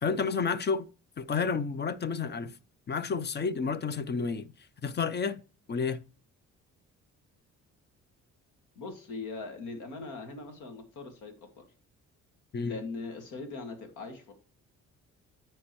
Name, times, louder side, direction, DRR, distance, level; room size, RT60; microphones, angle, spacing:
voice 1, 0.0-0.9 1.2-2.5 2.9-4.5 4.8-5.4 5.7-6.0 12.5-12.8, left 5 dB, 35° left, 0.6 m, -30 dB
voice 2, 8.8-11.6 12.6-14.3, left 3 dB, 85° left, 2.1 m, -40 dB
13.0 x 4.4 x 3.1 m
cardioid pair, 90°, 30 cm